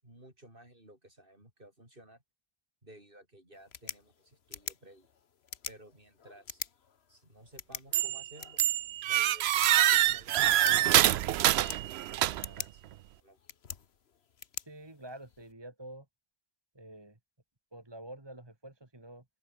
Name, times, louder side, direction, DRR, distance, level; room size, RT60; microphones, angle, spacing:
voice 1, 0.0-2.2 2.8-5.1 5.7-6.6 7.1-8.6 9.1-11.8 12.3-12.8 13.1-13.4, right 1 dB, 60° right, 8.1 m, -55 dB
sound 1, 3.5-15.5, left 7 dB, 80° left, 1.4 m, -46 dB
sound 2, 7.9-8.3 8.6-12.6, right 13 dB, 80° right, 0.8 m, -25 dB
voice 2, 14.7-16.1 16.7-17.2 17.7-19.3, right 1 dB, 25° right, 2.3 m, -47 dB
open air
omnidirectional pair, 1.0 m